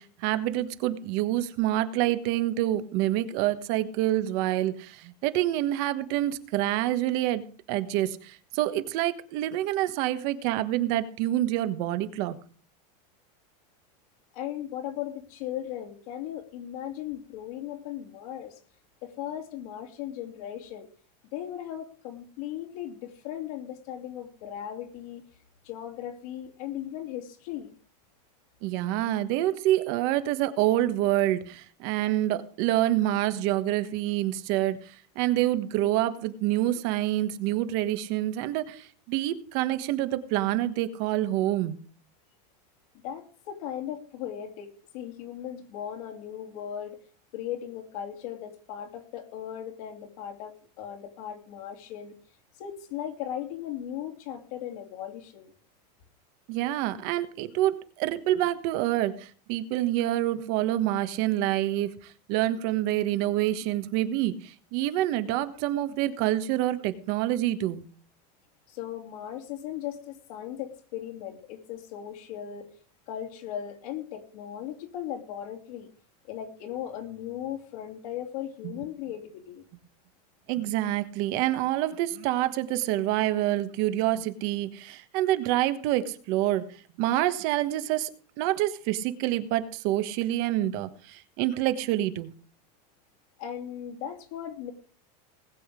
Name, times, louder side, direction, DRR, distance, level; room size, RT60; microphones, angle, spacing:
voice 1, 0.0-12.4 28.6-41.8 56.5-67.8 78.6-78.7 80.5-86.7 87.0-88.1 88.4-92.3, right 14 dB, 50° right, 11 dB, 1.4 m, -27 dB
voice 2, 14.3-18.6 19.0-20.9 21.3-25.2 25.6-27.7 42.9-47.0 47.3-52.1 52.6-55.5 68.7-72.7 73.1-75.9 76.3-79.6 93.4-94.7, left 10 dB, 60° left, 3 dB, 3.0 m, -37 dB
19.5 x 8.0 x 5.1 m, 0.43 s
supercardioid pair, 155°, 21 cm